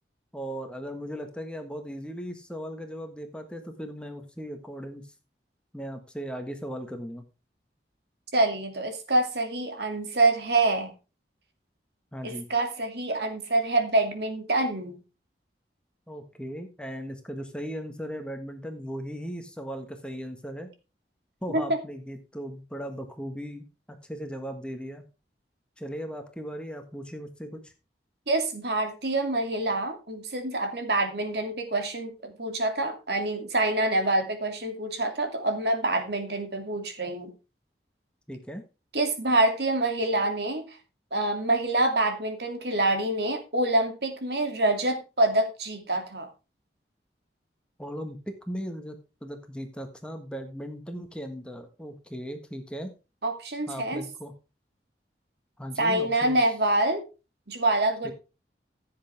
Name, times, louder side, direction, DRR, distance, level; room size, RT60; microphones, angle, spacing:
voice 1, 0.3-5.1 5.7-7.2 12.1-12.5 16.1-20.7 21.4-25.0 25.8-27.7 38.3-38.6 47.8-52.9 53.7-54.3 55.6-56.4 58.0-58.1, equal, 5° left, 5 dB, 1.5 m, -37 dB
voice 2, 8.3-11.0 12.2-15.0 21.5-21.8 28.3-37.3 38.9-40.8 41.1-46.3 53.2-54.0 55.8-57.0 57.5-58.1, right 2 dB, 65° right, 6 dB, 2.6 m, -26 dB
15.5 x 7.9 x 3.6 m, 0.31 s
head